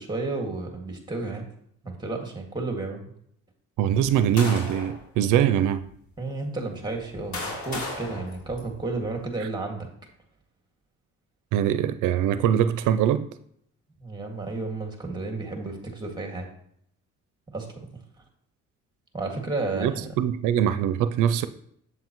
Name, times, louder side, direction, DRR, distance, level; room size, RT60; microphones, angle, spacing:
voice 1, 0.0-1.4 1.8-3.0 6.2-9.9 14.0-16.5 17.5-17.7 19.1-20.1, right 3 dB, 15° right, 2.0 m, -32 dB
voice 2, 3.8-5.8 11.5-13.3 19.7-21.5, right 10 dB, 90° right, 0.5 m, -23 dB
sound 1, 3.9-5.0 5.8-5.9 6.8-9.2, left 2 dB, 70° left, 3.4 m, -36 dB
7.9 x 7.6 x 3.0 m
cardioid pair, 90°, 30 cm